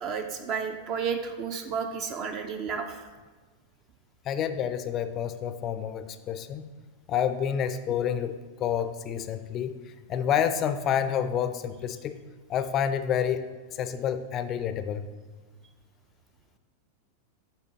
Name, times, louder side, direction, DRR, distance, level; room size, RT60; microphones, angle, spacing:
voice 1, 0.0-3.0, right 6 dB, 40° right, 6 dB, 0.5 m, -32 dB
voice 2, 4.3-6.7 7.1-9.8 10.1-12.2 12.5-15.1, left 8 dB, 30° left, 10 dB, 0.4 m, -29 dB
8.8 x 4.1 x 3.9 m, 1.4 s
figure-of-eight pair, 90°, 0 cm